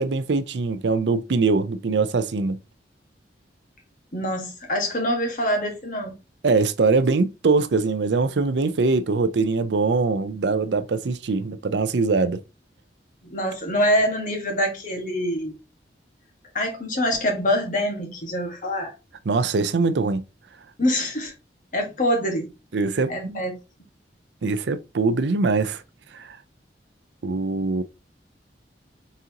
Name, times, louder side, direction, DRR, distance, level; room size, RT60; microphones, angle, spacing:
voice 1, 0.0-2.6 6.4-12.4 19.3-20.2 22.7-23.4 24.4-25.8 26.1-26.4 27.2-27.8, right 4 dB, 80° right, 0.5 m, -22 dB
voice 2, 4.1-6.2 13.2-15.6 16.5-18.9 20.8-21.3 21.7-22.5 23.1-23.5, equal, 45° left, 1.4 m, -25 dB
4.2 x 3.7 x 2.8 m
head